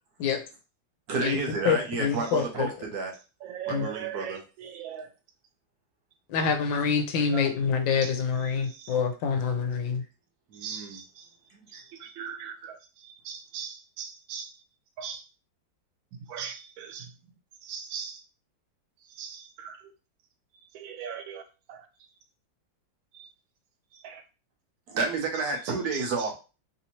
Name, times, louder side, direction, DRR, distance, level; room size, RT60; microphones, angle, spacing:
voice 1, 1.1-3.1 3.7-4.4 10.5-11.0 11.5-11.8 24.9-26.3, right 3 dB, 65° right, 1.3 m, -31 dB
voice 2, 1.6-2.7 3.7-3.9 6.3-10.0, left 6 dB, 85° left, 1.4 m, -26 dB
voice 3, 3.5-4.4 4.8-5.0 10.6-10.8 12.2-12.5 13.3-13.7 14.0-14.4 15.0-15.2 16.3-16.5 17.7-18.1 19.2-19.3 20.8-21.4, right 8 dB, 85° right, 1.4 m, -36 dB
3.4 x 2.7 x 2.9 m
omnidirectional pair, 2.0 m